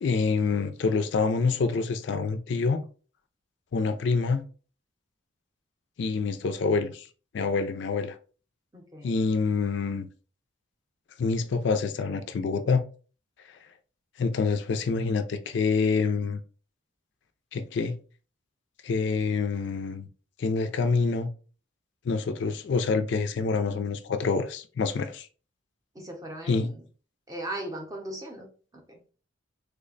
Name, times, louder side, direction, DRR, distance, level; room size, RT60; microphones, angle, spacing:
voice 1, 0.0-2.8 3.7-4.4 6.0-7.1 7.3-8.2 9.0-10.1 11.2-12.8 13.5-13.6 14.2-16.4 17.5-17.9 18.8-20.1 20.4-21.3 22.0-25.3 26.5-26.7, left 4 dB, 60° left, 0.4 m, -26 dB
voice 2, 8.7-9.2 25.9-26.8 27.3-29.0, right 1 dB, 15° right, 0.7 m, -38 dB
3.3 x 2.1 x 3.8 m
head